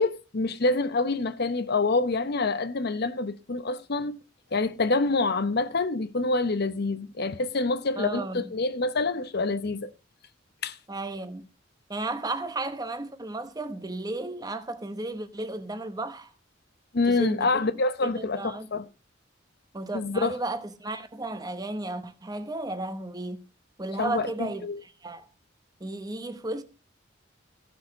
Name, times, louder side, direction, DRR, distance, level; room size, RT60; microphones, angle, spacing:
voice 1, 0.0-4.2 4.5-9.9 10.6-10.8 16.9-18.9 19.9-20.4 24.0-24.3 24.6-24.8, left 3 dB, 55° left, 0.8 m, -26 dB
voice 2, 8.0-8.5 10.9-11.5 11.9-16.3 17.1-17.5 18.0-18.7 19.7-23.5 23.8-25.3 25.8-26.6, right 2 dB, 20° right, 0.9 m, -34 dB
15.0 x 6.3 x 5.2 m
head